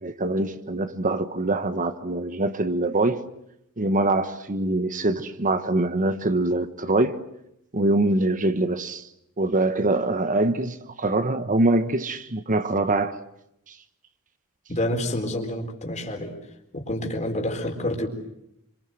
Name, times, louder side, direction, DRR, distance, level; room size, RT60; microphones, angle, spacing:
voice 1, 0.0-3.2 3.8-7.2 7.7-9.1 9.4-13.2 13.7-13.8, right 2 dB, 35° right, 1.3 m, -24 dB
voice 2, 14.7-16.3 16.7-18.1, left 1 dB, 35° left, 4.2 m, -28 dB
27.0 x 26.0 x 7.8 m
head